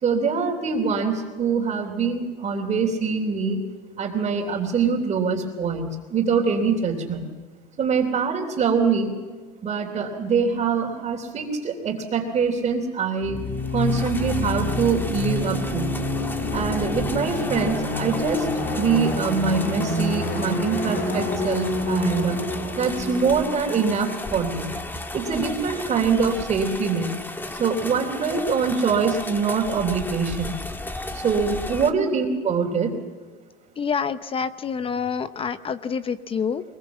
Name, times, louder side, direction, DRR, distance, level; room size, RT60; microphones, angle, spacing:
voice 1, 0.0-3.6 4.0-7.3 7.8-9.1 9.6-13.4 13.7-15.9 16.5-18.5 18.7-22.4 22.8-24.7 25.1-27.1 27.6-30.6 31.1-32.9, right 5 dB, 35° right, -4 dB, 3.3 m, -24 dB
sound 1, 13.2-24.8, left 2 dB, 45° left, 7.1 m, -28 dB
sound 2, 13.5-31.9, left 2 dB, 10° left, 1.6 m, -34 dB
voice 2, 33.8-36.6, left 6 dB, 25° left, 13 dB, 0.8 m, -27 dB
23.0 x 22.0 x 7.3 m, 1.4 s
supercardioid pair, 110°, 20 cm